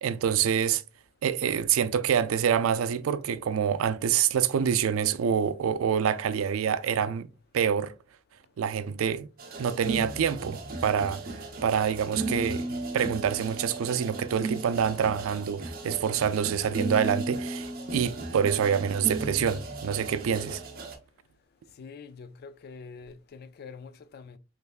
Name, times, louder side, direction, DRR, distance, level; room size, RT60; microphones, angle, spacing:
voice 1, 0.0-0.8 1.2-7.3 7.5-7.9 8.6-9.3 9.6-11.2 11.6-20.6, right 8 dB, 80° right, 0.4 m, -26 dB
sound 1, 9.4-20.9, right 2 dB, 45° right, 0.7 m, -35 dB
voice 2, 14.8-15.2 21.8-24.4, left 5 dB, 50° left, 0.3 m, -45 dB
3.4 x 3.2 x 2.3 m
head